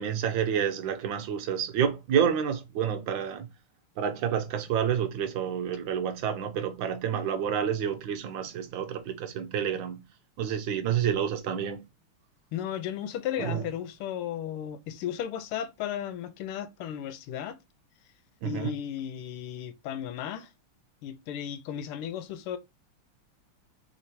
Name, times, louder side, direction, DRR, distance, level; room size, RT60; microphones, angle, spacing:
voice 1, 0.0-3.5 4.0-10.0 10.4-11.8 13.4-13.7 18.4-18.7, right 8 dB, 70° right, 1.2 m, -29 dB
voice 2, 12.5-17.6 18.4-20.5 21.0-22.6, left 10 dB, 80° left, 1.5 m, -35 dB
3.6 x 3.0 x 4.1 m
omnidirectional pair, 2.4 m